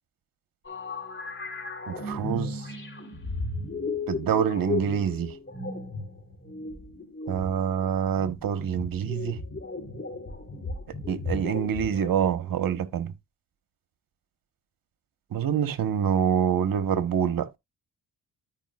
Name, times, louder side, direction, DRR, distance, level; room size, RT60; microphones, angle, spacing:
sound 1, 0.6-12.5, left 3 dB, 30° left, 3.6 m, -35 dB
voice 1, 1.9-2.6 4.1-5.3 7.3-9.4 11.1-13.1 15.3-17.6, right 8 dB, 60° right, 1.4 m, -26 dB
13.0 x 5.0 x 2.5 m
supercardioid pair, 55°, 39 cm